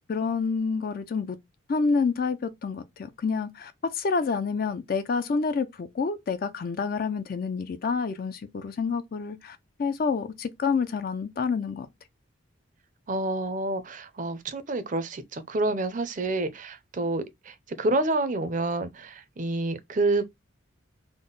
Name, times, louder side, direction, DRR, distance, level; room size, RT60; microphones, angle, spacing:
voice 1, 0.1-1.4 1.7-11.9, left 5 dB, 45° left, 0.3 m, -28 dB
voice 2, 13.1-20.2, right 2 dB, 40° right, 0.5 m, -28 dB
3.6 x 2.1 x 3.8 m
head